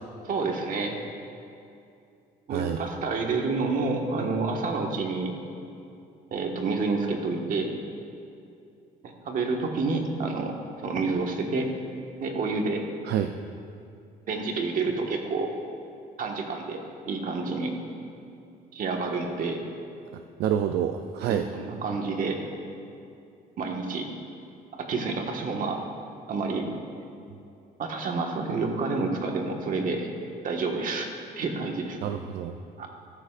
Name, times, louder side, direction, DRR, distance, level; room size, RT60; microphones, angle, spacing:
voice 1, 0.2-1.0 2.5-5.3 6.3-7.7 9.0-10.5 10.8-11.7 12.2-12.8 14.3-15.5 16.2-17.7 18.7-19.6 21.2-22.4 23.6-24.1 24.7-25.8 26.3-26.7 27.8-30.1 30.4-31.1 31.4-32.0 32.8-32.9, right 3 dB, 55° right, 2 dB, 1.6 m, -29 dB
voice 2, 2.5-2.8 13.0-13.3 20.1-21.5 32.0-32.6, right 9 dB, 75° right, 7 dB, 0.5 m, -28 dB
14.0 x 13.5 x 2.5 m, 2.6 s
cardioid pair, 110°, 17 cm